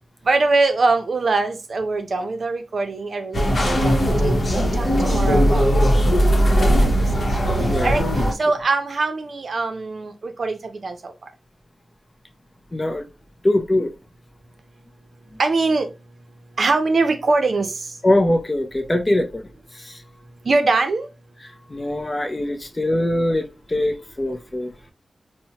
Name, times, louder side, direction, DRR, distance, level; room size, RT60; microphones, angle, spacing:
voice 1, 0.2-5.6 5.9-6.9 7.3-8.0 8.4-11.1 15.4-15.9 16.6-18.0 20.4-21.1, right 3 dB, 60° right, 0.6 m, -23 dB
sound 1, 3.3-8.3, equal, 45° left, 0.9 m, -18 dB
voice 2, 7.7-8.0 12.7-13.1 13.4-13.9 18.0-19.5 19.7-20.0 21.7-24.7, left 1 dB, 25° left, 0.5 m, -22 dB
4.2 x 2.1 x 2.8 m
wide cardioid pair, 105°, 0 cm